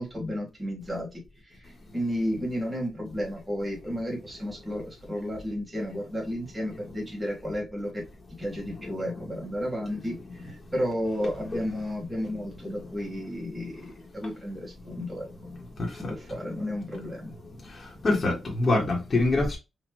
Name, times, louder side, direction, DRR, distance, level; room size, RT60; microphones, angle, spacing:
voice 1, 0.0-8.0 8.4-15.3 16.0-17.3, equal, 10° right, 1.9 m, -33 dB
voice 2, 15.8-16.1 17.6-19.6, left 2 dB, 35° left, 1.3 m, -25 dB
4.5 x 2.5 x 3.0 m
wide cardioid pair, 125°, 0 cm